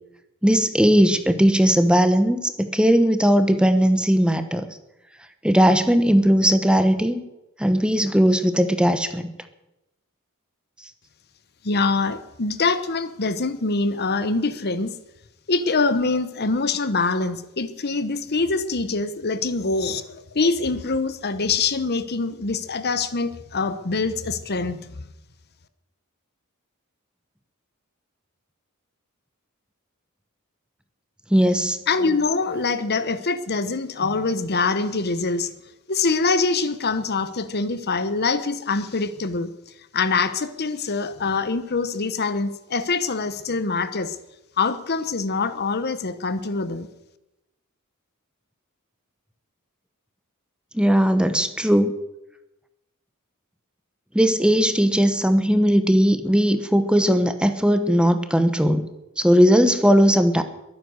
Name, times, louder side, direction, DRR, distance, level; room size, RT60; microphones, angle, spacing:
voice 1, 0.4-4.7 5.4-7.2 7.6-9.3 31.3-31.8 50.7-51.9 54.1-58.9 59.2-60.4, equal, 5° right, 9 dB, 1.0 m, -18 dB
voice 2, 11.6-14.9 15.5-25.1 31.9-35.5 35.9-39.5 39.9-44.2 44.6-46.9, left 4 dB, 45° left, 12 dB, 1.0 m, -24 dB
22.0 x 9.7 x 6.5 m, 0.92 s
head